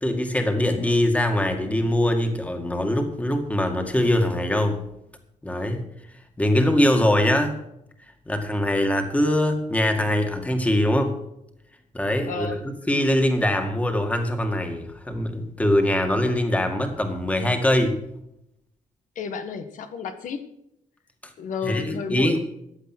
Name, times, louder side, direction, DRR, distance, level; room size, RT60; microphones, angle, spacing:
voice 1, 0.0-4.8 5.4-5.8 6.4-7.6 8.3-11.2 11.9-12.6 12.9-18.0 21.2-21.3 21.6-22.4, left 1 dB, 10° left, 5 dB, 2.1 m, -22 dB
voice 2, 12.3-12.6 19.1-20.4 21.4-22.4, left 5 dB, 70° left, 7 dB, 1.6 m, -32 dB
15.0 x 10.0 x 6.2 m, 0.79 s
cardioid pair, 130°, 14 cm